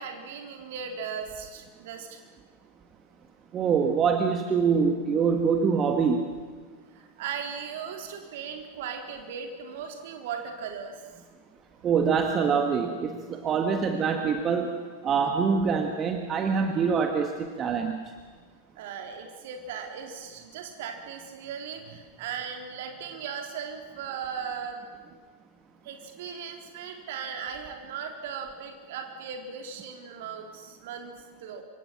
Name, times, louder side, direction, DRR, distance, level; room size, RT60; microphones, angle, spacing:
voice 1, 0.0-2.2 6.9-11.0 18.8-24.8 25.1-25.2 25.8-31.1 31.4-31.6, right 7 dB, 55° right, 3 dB, 3.8 m, -37 dB
voice 2, 3.5-6.2 11.8-18.0, right 6 dB, 25° right, 4 dB, 1.8 m, -25 dB
27.5 x 25.0 x 6.0 m, 1.5 s
figure-of-eight pair, 90°, 0 cm